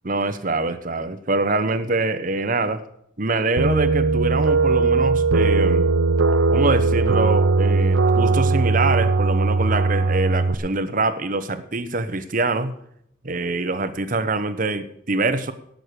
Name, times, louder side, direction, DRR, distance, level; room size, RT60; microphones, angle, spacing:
voice 1, 0.0-2.8 3.2-5.9 6.5-12.7 13.2-15.5, right 3 dB, 45° right, 12 dB, 0.9 m, -24 dB
sound 1, 3.6-10.5, right 3 dB, 80° right, 0.7 m, -19 dB
17.5 x 6.5 x 6.8 m, 0.72 s
head